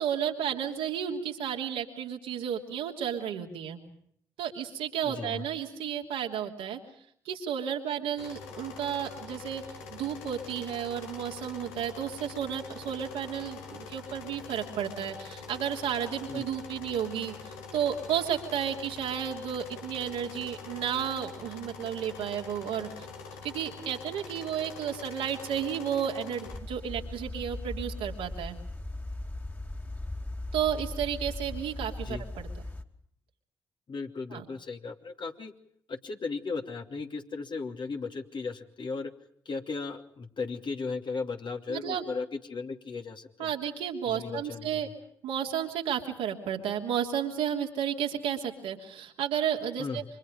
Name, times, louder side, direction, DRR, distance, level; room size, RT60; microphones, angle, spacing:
voice 1, 0.0-3.8 4.4-6.8 7.2-9.6 9.9-23.1 23.4-28.6 30.5-32.5 34.3-34.4 41.7-42.0 43.4-44.9 45.2-50.0, right 9 dB, 80° right, 1 dB, 3.0 m, -32 dB
voice 2, 5.0-5.4 16.3-16.5 32.0-32.3 33.9-35.5 35.9-39.1 39.4-43.5 44.0-44.8 49.8-50.0, left 4 dB, 50° left, 4 dB, 2.8 m, -36 dB
sound 1, 8.2-26.6, left 4 dB, 85° left, 1.9 m, -44 dB
sound 2, 26.4-32.8, left 2 dB, 20° left, 2.8 m, -38 dB
29.5 x 25.5 x 5.2 m, 0.66 s
hypercardioid pair, 40°, 10 cm